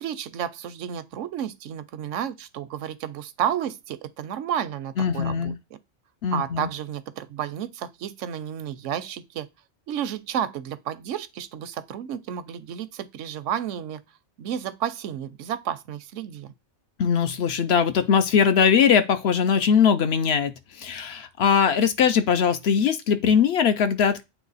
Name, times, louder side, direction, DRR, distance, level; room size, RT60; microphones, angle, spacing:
voice 1, 0.0-5.5 6.3-9.5 9.9-14.0 14.4-16.5, right 9 dB, 80° right, 0.9 m, -31 dB
voice 2, 5.0-5.6 6.2-6.7 17.0-24.2, left 7 dB, 65° left, 0.8 m, -21 dB
8.1 x 3.0 x 4.0 m
omnidirectional pair, 1.3 m